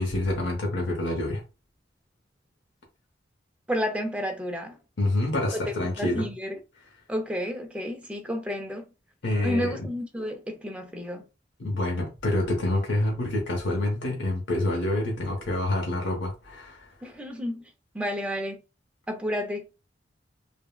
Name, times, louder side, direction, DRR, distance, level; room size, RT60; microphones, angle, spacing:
voice 1, 0.0-1.4 5.0-6.3 9.2-9.9 11.6-16.9, left 1 dB, 80° left, 0.8 m, -27 dB
voice 2, 3.7-4.8 5.5-6.6 7.1-8.9 9.4-11.2 17.0-17.6 17.9-18.6 19.1-19.8, equal, 5° right, 0.5 m, -31 dB
3.4 x 2.1 x 2.2 m
head